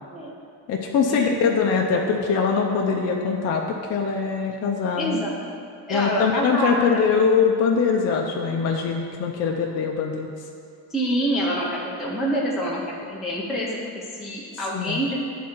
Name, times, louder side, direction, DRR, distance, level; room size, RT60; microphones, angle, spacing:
voice 1, 0.7-5.2 5.9-10.3 14.7-15.0, left 5 dB, 45° left, 0 dB, 0.6 m, -22 dB
voice 2, 5.0-5.3 5.9-7.0 10.9-15.3, right 1 dB, ahead, -6 dB, 0.6 m, -27 dB
10.5 x 3.7 x 4.4 m, 2.5 s
cardioid pair, 160°, 37 cm